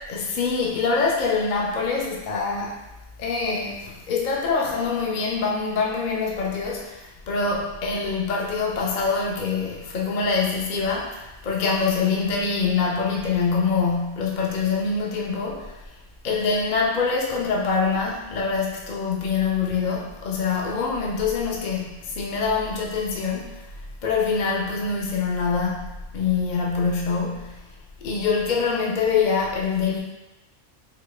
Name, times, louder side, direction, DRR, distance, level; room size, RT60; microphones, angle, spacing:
voice 1, 0.1-2.8 3.2-15.7 16.2-23.7 24.0-27.7 28.0-30.0, left 5 dB, 55° left, -2 dB, 0.6 m, -25 dB
4.1 x 3.2 x 2.3 m, 1.0 s
omnidirectional pair, 1.2 m